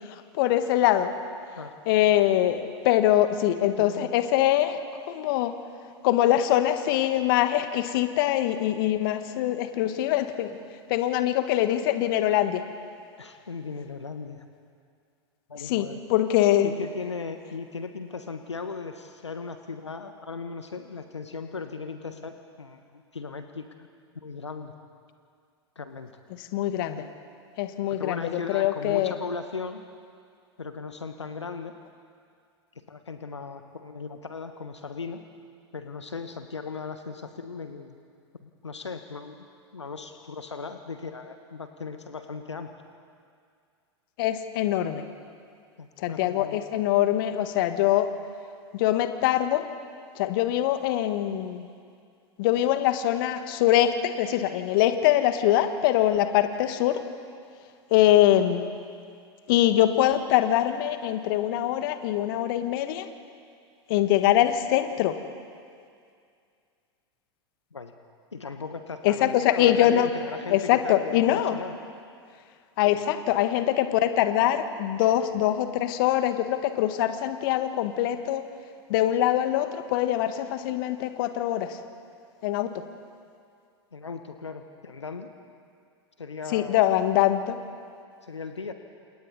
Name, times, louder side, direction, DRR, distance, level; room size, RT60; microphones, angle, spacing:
voice 1, 0.3-1.1 1.9-4.8 5.1-5.5 6.0-10.6 10.9-12.6 15.6-16.7 26.5-27.0 27.6-29.1 44.2-45.0 46.0-48.1 48.7-49.7 50.1-51.7 52.4-57.0 57.9-58.8 59.5-63.1 63.9-65.1 69.0-70.1 70.5-71.6 72.8-78.4 78.9-81.8 82.4-82.7 86.5-87.6, left 12 dB, 50° left, 9 dB, 1.5 m, -23 dB
voice 2, 3.8-4.1 13.2-14.4 15.5-16.0 16.6-23.7 24.1-24.7 25.7-26.1 27.9-29.8 30.6-31.7 32.7-35.2 35.7-38.0 38.3-39.3 39.7-42.7 45.8-46.6 67.7-67.9 68.3-71.7 72.8-73.0 83.9-85.3 86.2-86.8 88.2-88.7, left 4 dB, 80° left, 8 dB, 1.2 m, -37 dB
29.0 x 28.0 x 4.1 m, 2.3 s
figure-of-eight pair, 90°, 15 cm